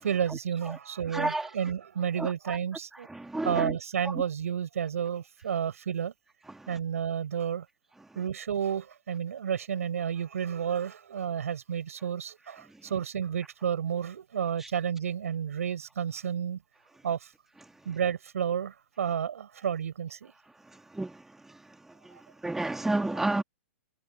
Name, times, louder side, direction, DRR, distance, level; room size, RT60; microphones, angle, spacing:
voice 1, 0.0-3.1 3.4-6.1 6.7-7.6 8.1-16.6 17.0-17.3 17.8-20.3, right 8 dB, 80° right, 6.6 m, -31 dB
voice 2, 1.1-1.5 2.2-2.3 3.1-3.7 6.5-6.7 14.6-14.7 20.9-21.2 22.0-22.2 22.4-23.4, right 2 dB, 5° right, 1.9 m, -30 dB
hypercardioid pair, 130°, 8 cm